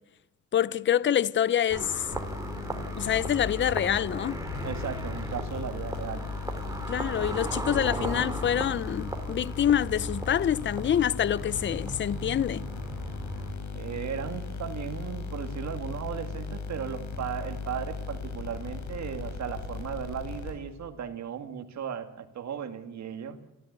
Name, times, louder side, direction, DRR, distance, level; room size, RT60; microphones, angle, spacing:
voice 1, 0.5-2.1 3.0-4.4 6.9-12.7, left 10 dB, 40° left, 0.7 m, -26 dB
sound 1, 1.7-13.5, right 2 dB, 10° right, 3.3 m, -38 dB
sound 2, 2.1-20.9, left 4 dB, 70° left, 4.7 m, -37 dB
voice 2, 4.6-6.3 6.7-6.8 13.7-23.4, right 8 dB, 65° right, 2.2 m, -36 dB
28.5 x 14.0 x 8.2 m
cardioid pair, 90°, 30 cm